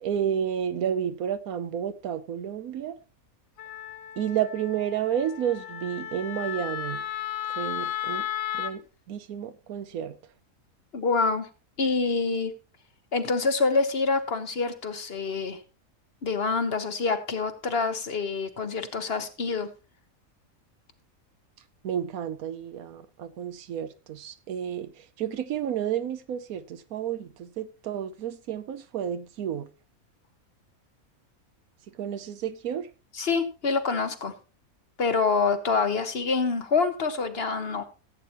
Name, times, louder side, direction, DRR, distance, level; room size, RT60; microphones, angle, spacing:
voice 1, 0.0-3.0 4.2-7.0 7.6-8.3 8.5-10.2 21.8-29.7 31.9-32.9, right 9 dB, 90° right, 1.2 m, -31 dB
Wind instrument woodwind instrument, 3.6-8.7, left 11 dB, 70° left, 1.3 m, -34 dB
voice 2, 10.9-11.5 11.8-12.5 13.1-15.6 16.2-19.7 33.1-34.3 35.0-37.8, left 4 dB, 45° left, 1.1 m, -26 dB
15.5 x 8.4 x 3.0 m
omnidirectional pair, 1.5 m